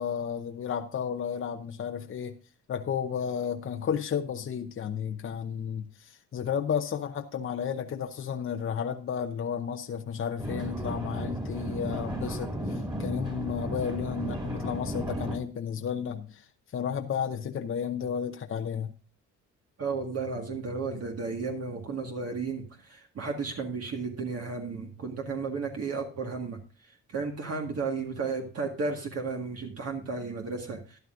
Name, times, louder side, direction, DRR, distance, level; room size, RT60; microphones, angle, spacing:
voice 1, 0.0-2.4 2.7-16.5 16.7-18.9, left 7 dB, 45° left, 6 dB, 0.8 m, -32 dB
sound 1, 10.4-15.4, right 1 dB, 15° right, 2.4 m, -34 dB
voice 2, 19.8-26.6 27.1-31.0, right 4 dB, 50° right, 1 dB, 1.8 m, -33 dB
13.0 x 10.5 x 2.5 m, 0.34 s
cardioid pair, 90°, 30 cm